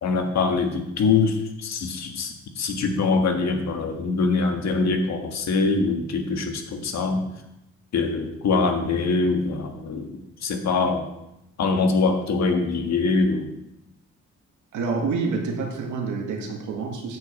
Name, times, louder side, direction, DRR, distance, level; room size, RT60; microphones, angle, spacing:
voice 1, 0.0-7.3 7.9-11.1 11.6-13.5, left 4 dB, 60° left, 4 dB, 1.6 m, -23 dB
voice 2, 14.7-17.2, right 4 dB, 80° right, 1 dB, 1.9 m, -28 dB
9.3 x 5.0 x 7.2 m, 0.86 s
cardioid pair, 90°, 30 cm